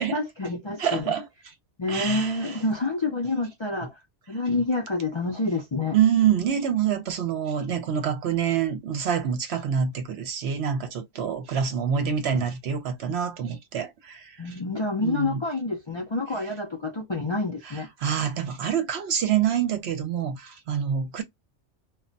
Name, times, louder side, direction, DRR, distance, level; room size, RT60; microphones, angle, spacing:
voice 1, 0.0-1.1 1.8-3.9 4.3-6.0 14.4-17.9, left 2 dB, 35° left, 0.4 m, -28 dB
voice 2, 0.8-1.5 1.9-2.6 5.9-14.6 15.0-15.4 17.6-21.2, right 8 dB, 65° right, 0.9 m, -26 dB
2.3 x 2.2 x 3.8 m
omnidirectional pair, 1.2 m